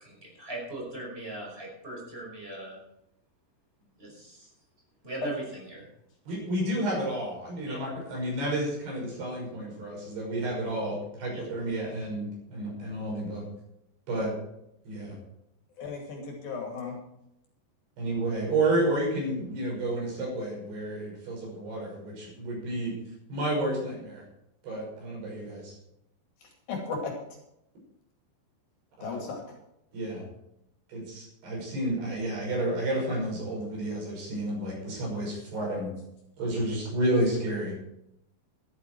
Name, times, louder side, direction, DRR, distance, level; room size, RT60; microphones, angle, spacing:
voice 1, 0.0-2.8 4.0-4.5 5.0-5.9 7.6-7.8 11.3-11.4, right 1 dB, 15° right, -2 dB, 5.5 m, -39 dB
voice 2, 6.3-13.5 14.1-14.4 14.9-15.2 18.0-23.0 23.3-24.2 24.6-25.8 29.0-29.2 29.9-30.2 30.9-35.9 36.4-37.7, right 1 dB, 65° right, -2 dB, 7.8 m, -31 dB
voice 3, 15.8-17.0 26.7-27.1 29.0-29.4 35.7-35.8, left 4 dB, 60° left, 1 dB, 4.1 m, -35 dB
13.5 x 12.5 x 4.7 m, 0.80 s
omnidirectional pair, 5.0 m